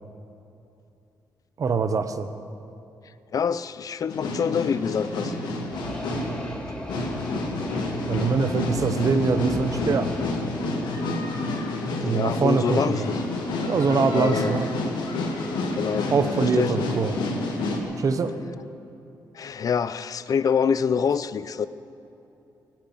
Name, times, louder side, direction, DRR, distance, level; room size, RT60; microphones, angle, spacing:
voice 1, 1.6-2.3 8.1-10.1 12.0-13.1 13.6-14.7 16.1-17.2 18.0-18.4, right 5 dB, 50° right, 10 dB, 0.9 m, -23 dB
voice 2, 3.3-5.3 12.0-13.2 14.1-14.6 15.7-16.9 19.3-21.7, left 7 dB, 50° left, 15 dB, 0.5 m, -26 dB
sound 1, 4.1-17.8, left 2 dB, 85° left, 1.9 m, -29 dB
sound 2, 5.7-11.1, equal, 10° left, 1.7 m, -37 dB
17.0 x 7.5 x 9.4 m, 2.8 s
cardioid pair, 80°, 7 cm